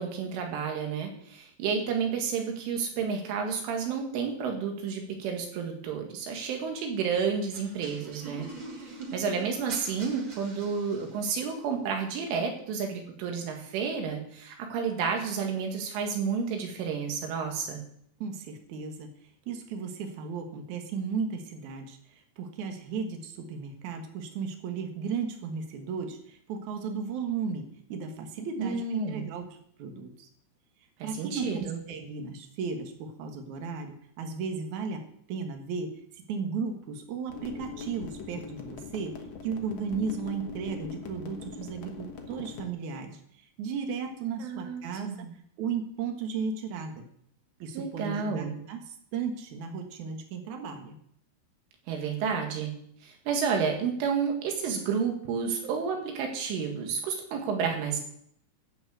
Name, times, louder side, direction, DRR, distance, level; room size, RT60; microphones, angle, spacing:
voice 1, 0.0-8.5 8.7-17.8 28.6-29.3 31.0-31.8 44.4-45.3 47.8-48.6 51.9-52.7 53.0-58.0, right 6 dB, 85° right, 2 dB, 4.5 m, -31 dB
sound 1, 7.5-11.5, right 3 dB, 45° right, 1.7 m, -44 dB
voice 2, 18.2-19.1 19.5-29.4 29.8-30.3 31.0-35.0 35.3-35.9 36.3-39.1 39.4-43.2 43.6-45.3 45.6-47.0 47.6-51.0, right 5 dB, 60° right, 4 dB, 2.1 m, -35 dB
sound 2, 37.3-42.7, left 5 dB, 85° left, 1.5 m, -41 dB
14.0 x 6.1 x 7.8 m, 0.68 s
omnidirectional pair, 5.5 m